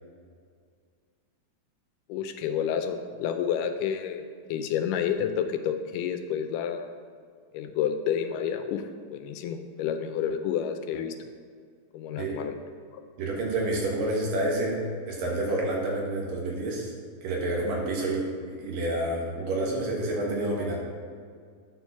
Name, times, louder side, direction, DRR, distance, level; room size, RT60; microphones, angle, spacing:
voice 1, 2.1-4.2 4.5-6.9 7.5-11.2 11.9-12.5 12.9-13.0, left 8 dB, 85° left, 7 dB, 2.2 m, -29 dB
voice 2, 13.2-16.9 17.2-20.8, right 1 dB, 85° right, -2 dB, 3.1 m, -29 dB
9.1 x 4.4 x 5.8 m, 2.1 s
omnidirectional pair, 3.8 m